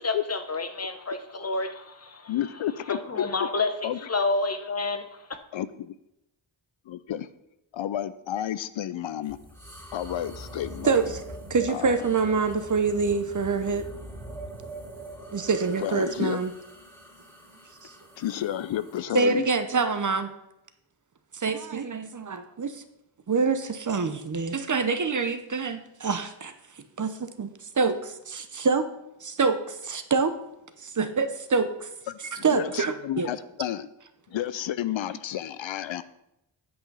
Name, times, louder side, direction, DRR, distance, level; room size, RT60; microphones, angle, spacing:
voice 1, 0.0-2.3 2.9-5.0, left 3 dB, 30° left, 8 dB, 0.9 m, -29 dB
voice 2, 2.3-3.5 3.8-4.0 5.5-5.7 6.9-7.3 7.7-9.4 9.9-11.0 11.7-12.0 15.8-16.4 18.2-19.5 32.1-33.9 34.3-36.0, left 11 dB, 70° left, 15 dB, 0.5 m, -31 dB
sound 1, 9.2-19.0, right 1 dB, 5° left, 2.3 m, -44 dB
voice 3, 11.5-13.9 15.3-16.5 19.1-20.3 21.3-22.8 23.3-26.5 27.0-27.5 27.8-28.9 29.2-30.3 30.8-31.9 32.4-33.3, right 4 dB, 40° right, 9 dB, 0.8 m, -26 dB
8.8 x 5.6 x 5.4 m, 0.85 s
cardioid pair, 65°, 47 cm